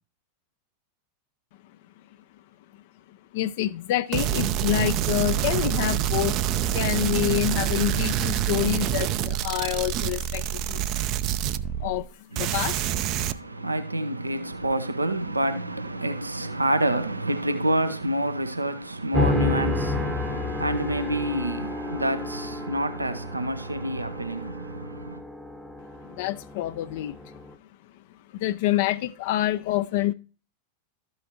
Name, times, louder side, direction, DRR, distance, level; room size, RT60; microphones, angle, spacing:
voice 1, 3.1-6.4 6.7-10.9 11.8-12.1 12.4-12.9 26.1-27.2 28.3-30.1, left 15 dB, 50° left, 0.4 m, -27 dB
sound 1, 4.1-12.1 12.4-13.3, right 11 dB, 40° right, 0.4 m, -26 dB
voice 2, 13.2-25.2, right 1 dB, 80° right, 0.6 m, -28 dB
sound 2, 19.1-27.5, left 2 dB, 5° right, 0.8 m, -31 dB
13.0 x 5.5 x 2.9 m
figure-of-eight pair, 90°, 0 cm